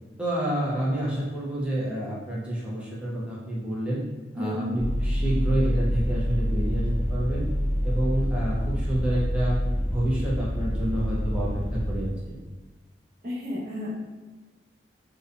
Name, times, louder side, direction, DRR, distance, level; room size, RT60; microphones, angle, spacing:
voice 1, 0.2-4.0 4.3-7.5 7.8-9.6 9.8-12.3, right 1 dB, 5° right, -6 dB, 0.5 m, -28 dB
voice 2, 4.3-4.8 13.2-14.0, left 1 dB, 50° right, -8 dB, 0.9 m, -32 dB
Vehicle, 4.8-12.1, equal, 35° left, 0.6 m, -27 dB
2.7 x 2.1 x 2.4 m, 1.3 s
head